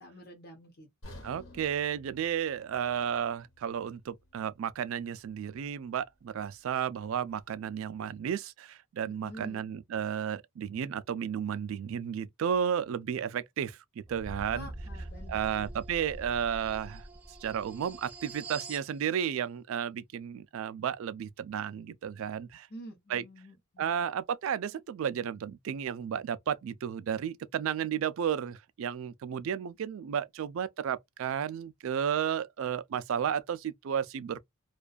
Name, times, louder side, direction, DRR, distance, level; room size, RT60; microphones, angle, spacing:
voice 1, 0.0-1.2 9.0-9.6 14.5-15.7 22.7-24.0, equal, 45° left, 0.7 m, -49 dB
sound 1, 1.0-5.1 5.4-5.6 6.2-6.3, left 1 dB, 75° left, 1.2 m, -53 dB
voice 2, 1.2-14.7 15.3-17.1 17.4-22.7 23.1-23.2 23.8-34.4, right 8 dB, 70° right, 0.3 m, -33 dB
sound 2, 14.1-18.9, right 2 dB, 5° right, 0.5 m, -43 dB
2.4 x 2.3 x 2.3 m
head